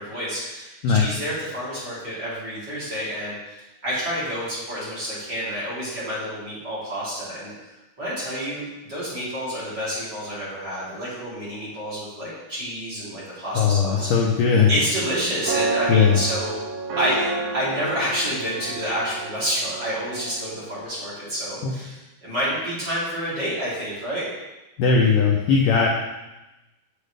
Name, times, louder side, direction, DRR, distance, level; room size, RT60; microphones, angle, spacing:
voice 1, 0.0-3.6 3.8-8.6 8.9-14.1 14.7-16.6 17.0-24.3, equal, 30° right, -10 dB, 3.2 m, -29 dB
voice 2, 13.5-14.7 15.9-16.2 21.6-21.7 24.8-25.9, left 5 dB, 85° left, -1 dB, 1.9 m, -18 dB
sound 1, 13.8-20.8, right 3 dB, 75° right, 2.5 m, -31 dB
8.4 x 7.5 x 3.3 m, 1.0 s
omnidirectional pair, 4.7 m